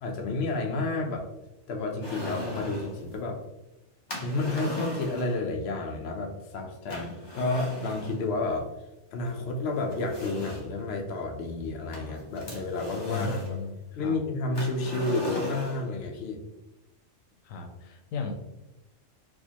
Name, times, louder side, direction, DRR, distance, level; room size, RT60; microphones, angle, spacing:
voice 1, 0.0-1.3 1.7-3.4 4.2-8.7 9.1-13.6 14.0-16.4, left 2 dB, 60° left, 2 dB, 0.8 m, -31 dB
sound 1, 2.0-3.0 4.1-5.4 6.9-8.2 9.3-9.4 9.9-10.8 11.9-13.6 14.5-15.9, left 1 dB, 30° left, 0.5 m, -37 dB
voice 2, 13.1-14.2 17.4-18.3, left 5 dB, 90° left, 3 dB, 1.0 m, -35 dB
4.6 x 2.1 x 2.8 m, 0.96 s
omnidirectional pair, 1.3 m